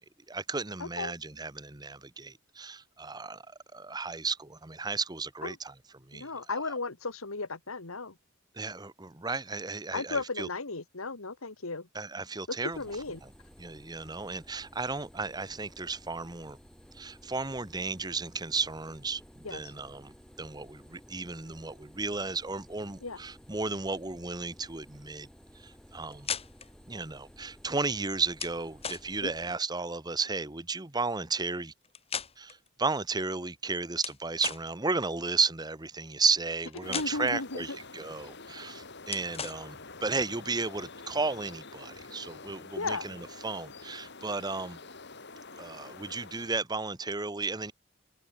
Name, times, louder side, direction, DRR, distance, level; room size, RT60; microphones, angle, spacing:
voice 1, 0.3-3.4 3.7-6.3 8.5-10.5 11.9-12.8 13.2-13.3 13.6-16.6 16.9-25.3 25.6-26.3 26.9-31.7 32.4-44.8 45.6-47.7, right 4 dB, 20° right, 1.1 m, -34 dB
voice 2, 0.8-1.1 5.4-5.6 6.1-8.1 9.9-11.9 12.8-13.2 19.4-19.6 23.0-23.2 29.2-29.3 36.8-37.6 42.8-43.1, left 3 dB, 80° left, 2.1 m, -35 dB
sound 1, 12.7-29.6, equal, 5° left, 6.9 m, -55 dB
sound 2, 26.1-26.7 28.4-28.6 28.8-29.1 31.8-32.7 34.0-34.7 36.7-37.4 39.1-39.6, left 7 dB, 30° left, 4.2 m, -37 dB
sound 3, 36.8-46.6, left 3 dB, 55° left, 4.2 m, -47 dB
head